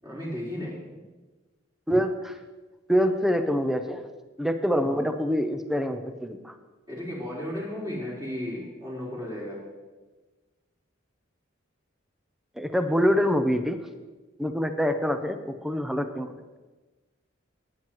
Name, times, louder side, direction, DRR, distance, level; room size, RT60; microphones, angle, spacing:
voice 1, 0.0-1.0 4.7-5.0 6.9-9.6, left 1 dB, 20° right, -6 dB, 4.1 m, -35 dB
voice 2, 1.9-2.4 2.9-4.0 4.4-6.6 12.6-13.8 14.4-16.3, equal, ahead, 7 dB, 0.6 m, -25 dB
17.5 x 9.2 x 3.1 m, 1.2 s
head